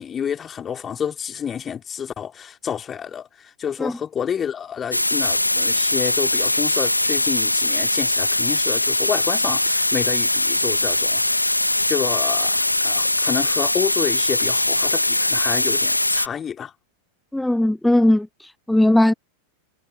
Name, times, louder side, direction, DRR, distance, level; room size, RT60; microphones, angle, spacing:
voice 1, 0.0-16.7, left 8 dB, 25° left, 3.8 m, -29 dB
sound 1, 4.9-16.3, left 1 dB, 85° left, 1.8 m, -21 dB
voice 2, 17.3-19.1, left 1 dB, 5° left, 0.7 m, -18 dB
figure-of-eight pair, 90°, 0 cm